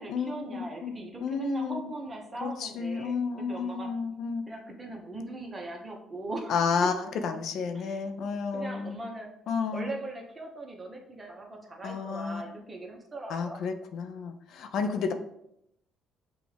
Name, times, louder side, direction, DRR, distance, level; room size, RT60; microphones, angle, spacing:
voice 1, 0.0-3.2 3.5-3.9 4.5-6.6 6.8-6.9 7.7-9.3 9.7-13.6, right 2 dB, 25° right, 1 dB, 1.0 m, -40 dB
voice 2, 1.2-1.8 2.4-4.5 6.5-6.9 7.2-9.0 9.5-9.9 11.8-12.4 13.3-15.1, left 5 dB, 65° left, 7 dB, 0.4 m, -31 dB
6.0 x 2.4 x 3.4 m, 0.78 s
cardioid pair, 85°, 0 cm